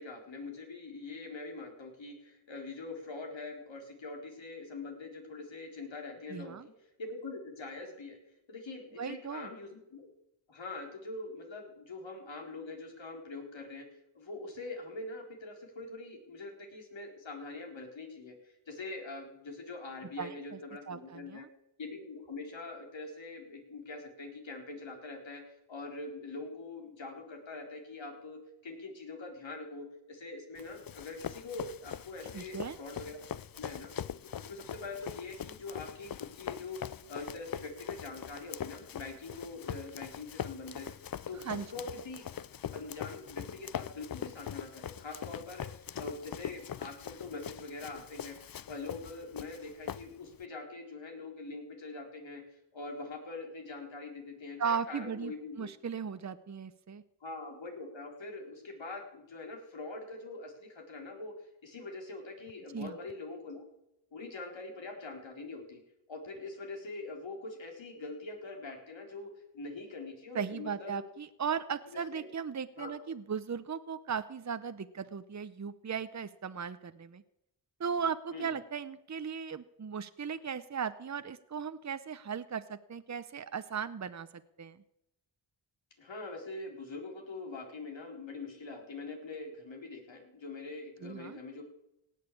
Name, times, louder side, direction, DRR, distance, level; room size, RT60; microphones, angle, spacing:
voice 1, 0.0-8.2 8.5-10.1 10.5-13.9 14.1-21.5 21.8-33.2 33.6-33.9 34.2-40.9 41.3-42.3 42.7-48.4 48.7-55.7 57.2-61.3 61.6-63.6 64.1-65.8 66.1-71.0 71.9-72.3 72.8-73.1 78.3-78.5 86.0-91.6, left 3 dB, 70° left, 2 dB, 4.0 m, -44 dB
voice 2, 6.3-6.7 9.0-9.5 20.2-20.3 20.9-21.5 32.3-32.8 41.5-41.6 54.6-57.0 62.7-62.9 70.3-77.2 77.8-84.3 84.6-84.8 91.0-91.4, right 6 dB, 35° right, 12 dB, 0.9 m, -37 dB
Run, 30.6-50.4, left 9 dB, 45° left, 0.6 m, -42 dB
17.5 x 6.7 x 8.5 m, 0.86 s
cardioid pair, 55°, 48 cm